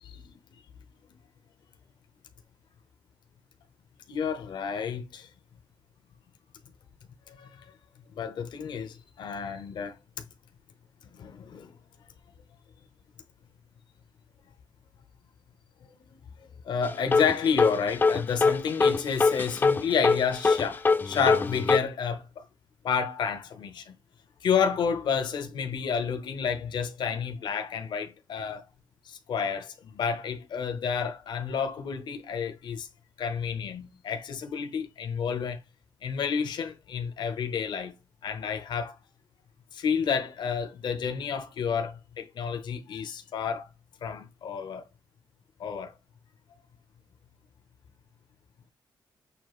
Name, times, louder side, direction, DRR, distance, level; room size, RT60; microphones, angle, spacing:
voice 1, 4.1-5.3 7.3-7.7 8.2-9.9 11.1-11.7 16.6-22.4 22.8-24.0 24.4-28.6 29.1-32.9 33.2-35.6 36.0-38.0 38.2-38.9 39.7-43.7 44.0-44.8 45.6-45.9, left 6 dB, 75° left, 0.8 m, -30 dB
sound 1, 16.8-21.8, left 4 dB, 25° left, 0.4 m, -23 dB
6.8 x 2.5 x 3.0 m
wide cardioid pair, 130°, 8 cm